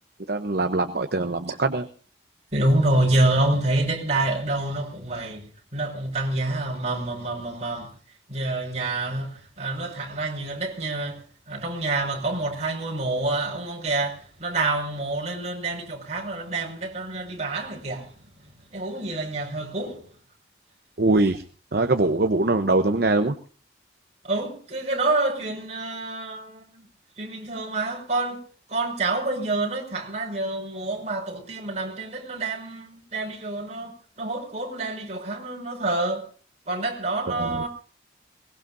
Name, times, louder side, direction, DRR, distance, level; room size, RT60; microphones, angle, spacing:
voice 1, 0.3-1.9 21.0-21.4 21.7-23.4 37.3-37.7, right 2 dB, 55° right, 0.9 m, -22 dB
voice 2, 2.5-7.9 8.3-18.1 18.7-20.1 24.2-26.8 27.2-28.4 28.7-36.3 36.7-37.7, right 2 dB, 40° right, 5.6 m, -27 dB
22.0 x 20.5 x 2.7 m
head